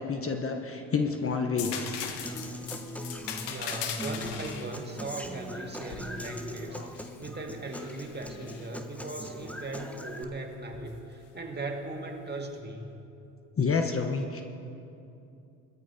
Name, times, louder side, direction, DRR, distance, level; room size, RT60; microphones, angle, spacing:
voice 1, 0.0-2.0 6.7-6.9 13.6-14.4, left 5 dB, 30° left, 4 dB, 1.1 m, -29 dB
sound 1, 1.6-7.2 7.7-8.7 10.7-10.9, left 8 dB, 65° left, 1.3 m, -39 dB
Human voice / Acoustic guitar, 2.2-10.2, equal, 5° left, 1.1 m, -41 dB
voice 2, 3.5-12.9, right 2 dB, 20° right, 2 dB, 1.9 m, -38 dB
21.0 x 13.5 x 2.8 m, 2.7 s
hypercardioid pair, 65°, 45 cm